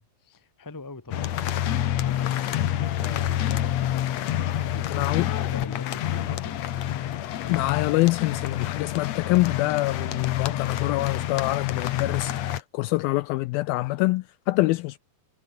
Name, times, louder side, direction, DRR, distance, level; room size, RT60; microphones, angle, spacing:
voice 1, 0.0-3.9 4.3-5.1 5.5-6.6, left 2 dB, 10° left, 0.9 m, -43 dB
sound 1, 1.1-12.6, left 12 dB, 65° left, 1.7 m, -28 dB
voice 2, 4.9-5.3 7.5-15.0, left 20 dB, 85° left, 2.2 m, -25 dB
omnidirectional pair, 4.7 m